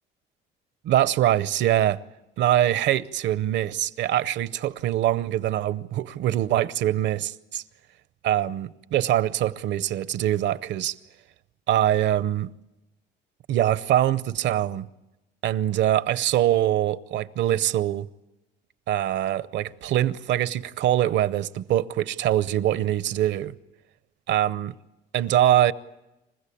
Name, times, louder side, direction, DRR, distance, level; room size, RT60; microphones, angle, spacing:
voice 1, 0.8-2.0 2.4-7.6 8.2-11.0 11.7-12.5 13.5-14.9 15.4-18.1 18.9-23.5 24.3-24.7 25.1-25.7, right 12 dB, 70° right, 0.7 m, -23 dB
27.5 x 15.0 x 8.5 m
cardioid pair, 115°, 19 cm